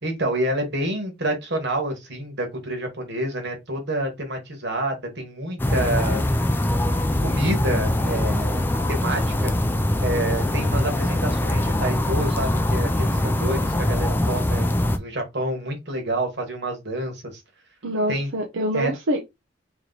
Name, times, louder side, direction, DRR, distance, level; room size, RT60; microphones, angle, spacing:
voice 1, 0.0-6.3 7.2-9.5 10.0-14.7 15.0-17.4 18.1-18.3 18.7-18.9, right 1 dB, 60° right, 1.4 m, -28 dB
sound 1, 5.6-15.0, left 1 dB, 10° left, 0.4 m, -23 dB
voice 2, 17.8-19.2, equal, 80° right, 0.7 m, -25 dB
3.0 x 3.0 x 3.9 m
head